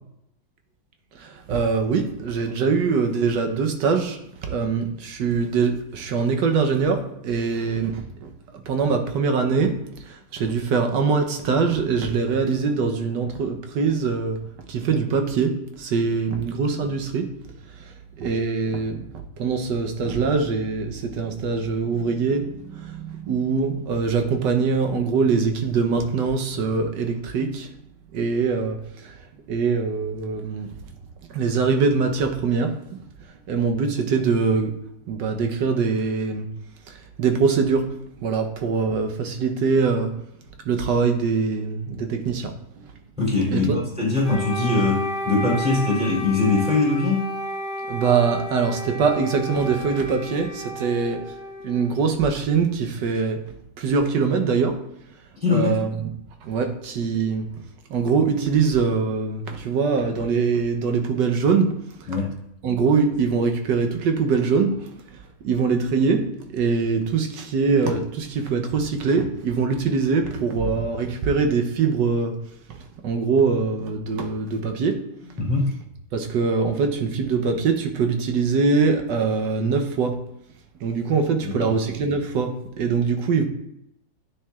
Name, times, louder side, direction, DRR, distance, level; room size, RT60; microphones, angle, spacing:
voice 1, 1.1-9.7 10.0-14.4 14.7-17.3 17.8-19.1 19.4-27.7 28.1-29.2 29.5-30.7 31.3-33.0 33.5-34.8 35.0-36.5 36.9-37.9 38.2-40.1 40.6-42.8 43.5-43.8 47.9-51.2 51.6-53.4 53.8-54.8 55.5-56.1 56.4-57.5 57.9-61.7 62.0-62.1 62.6-64.8 65.1-72.4 72.7-72.8 73.0-75.0 76.1-80.2 80.8-83.4, right 5 dB, 75° right, 5 dB, 1.5 m, -23 dB
voice 2, 43.2-47.4 55.4-55.8 62.1-62.4 75.4-75.7 81.4-81.7, left 3 dB, 5° right, -5 dB, 2.8 m, -22 dB
Wind instrument woodwind instrument, 44.2-52.3, equal, 50° left, 1.5 m, -32 dB
9.5 x 6.7 x 2.4 m, 0.80 s
omnidirectional pair, 1.9 m